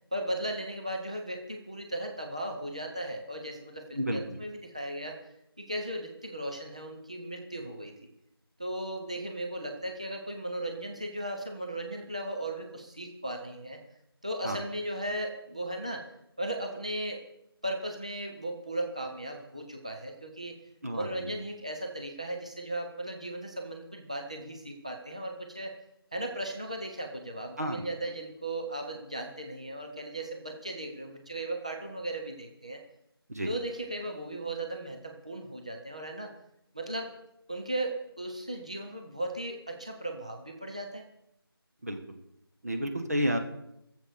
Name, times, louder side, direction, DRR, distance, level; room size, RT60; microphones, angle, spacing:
voice 1, 0.1-5.2 5.6-8.1 8.6-13.8 14.2-16.0 16.4-17.2 17.6-20.6 20.9-25.8 26.1-32.8 33.4-36.3 36.7-37.2 37.5-41.0, right 1 dB, 15° right, 2 dB, 0.7 m, -36 dB
voice 2, 20.8-21.3 27.6-27.9 33.3-33.5 41.8-42.2 42.6-43.4, equal, 40° right, 4 dB, 1.4 m, -31 dB
15.5 x 7.7 x 6.7 m, 0.82 s
figure-of-eight pair, 180°, 13 cm